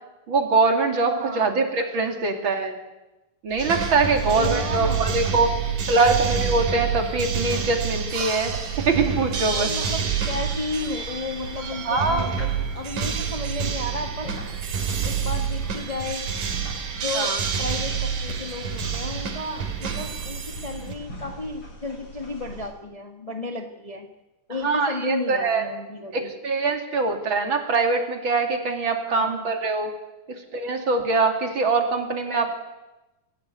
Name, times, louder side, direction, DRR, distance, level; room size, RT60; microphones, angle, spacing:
voice 1, 0.3-2.8 3.4-5.5 5.9-9.7 11.8-12.3 17.1-17.4 24.6-25.6 26.1-29.9 30.5-32.5, right 3 dB, 40° right, 4 dB, 3.2 m, -23 dB
voice 2, 1.1-1.5 4.3-5.1 9.5-14.3 15.0-16.2 16.9-24.1 24.5-26.3 29.1-29.5, left 2 dB, 75° left, 4 dB, 0.3 m, -33 dB
sound 1, 3.5-22.7, equal, 45° left, 8.0 m, -41 dB
sound 2, 3.6-20.9, right 7 dB, 80° right, 4.1 m, -28 dB
24.5 x 16.5 x 9.5 m, 1.0 s
omnidirectional pair, 3.6 m